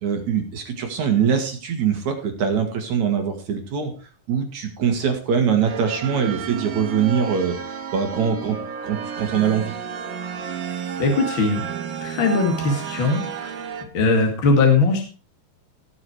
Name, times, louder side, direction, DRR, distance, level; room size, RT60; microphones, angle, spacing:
voice 1, 0.0-3.9 4.3-7.6 7.9-8.6 8.8-9.8, right 7 dB, 55° right, 4 dB, 2.9 m, -23 dB
sound 1, 5.7-13.8, right 7 dB, 75° right, 3.2 m, -32 dB
voice 2, 11.0-11.6 12.0-13.6 13.9-15.1, left 3 dB, 40° left, 2 dB, 2.4 m, -20 dB
17.5 x 6.4 x 4.8 m, 0.36 s
omnidirectional pair, 4.3 m